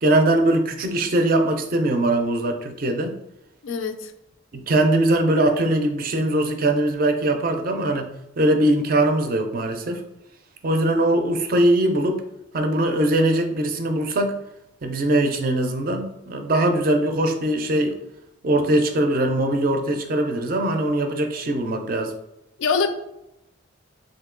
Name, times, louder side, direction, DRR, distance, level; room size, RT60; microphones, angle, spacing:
voice 1, 0.0-3.1 4.5-8.1 8.4-10.0 10.6-12.2 12.5-14.4 14.8-18.0 18.4-22.1, right 1 dB, 45° right, 0.4 m, -21 dB
voice 2, 3.6-4.1 22.6-22.9, left 5 dB, 75° left, 0.4 m, -23 dB
2.9 x 2.7 x 3.7 m
head